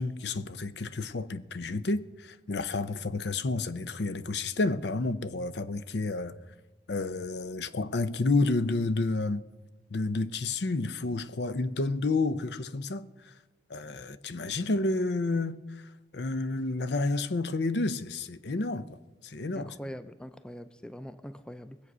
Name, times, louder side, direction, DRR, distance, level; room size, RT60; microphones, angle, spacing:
voice 1, 0.0-6.4 6.9-9.5 9.9-13.3 13.7-19.0 19.2-19.7, left 3 dB, 75° left, 0.7 m, -30 dB
voice 2, 19.5-21.8, equal, 5° left, 0.5 m, -42 dB
21.0 x 8.1 x 6.1 m
head